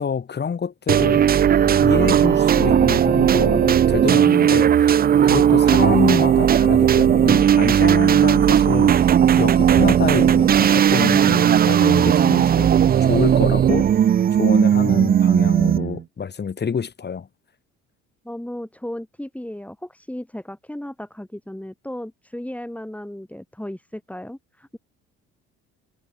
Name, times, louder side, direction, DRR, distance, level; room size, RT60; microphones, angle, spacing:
voice 1, 0.0-12.7 13.0-13.9 14.3-17.3, left 6 dB, 35° left, 2.0 m, -27 dB
sound 1, 0.9-16.0, right 9 dB, 30° right, 0.5 m, -16 dB
voice 2, 18.2-24.8, left 1 dB, 5° left, 6.4 m, -35 dB
supercardioid pair, 70°, 31 cm